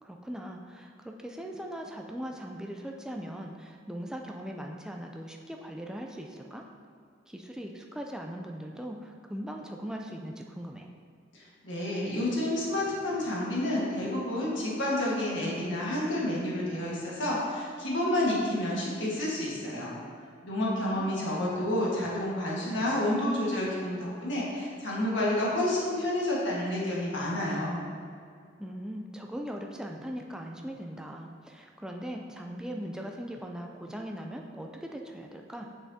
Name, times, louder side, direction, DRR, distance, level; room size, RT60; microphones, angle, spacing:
voice 1, 0.0-6.6 7.3-10.9 20.6-21.3 28.6-35.7, equal, 5° right, 1 dB, 0.3 m, -39 dB
voice 2, 11.3-19.9 20.4-27.8, left 1 dB, 85° left, -5 dB, 1.6 m, -29 dB
7.1 x 5.8 x 2.7 m, 2.2 s
head